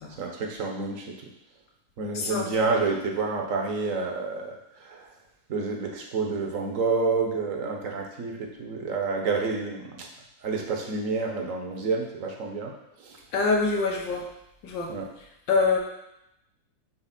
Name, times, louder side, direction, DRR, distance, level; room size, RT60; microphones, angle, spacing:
voice 1, 0.2-1.1 2.0-5.1 5.5-10.1 10.4-12.7 13.0-13.2 14.9-15.1, right 4 dB, 50° right, 1 dB, 1.3 m, -29 dB
voice 2, 2.1-2.7 13.3-14.2 14.6-14.9 15.5-15.8, left 4 dB, 80° left, 0 dB, 1.8 m, -25 dB
7.0 x 3.2 x 5.9 m, 0.83 s
omnidirectional pair, 2.0 m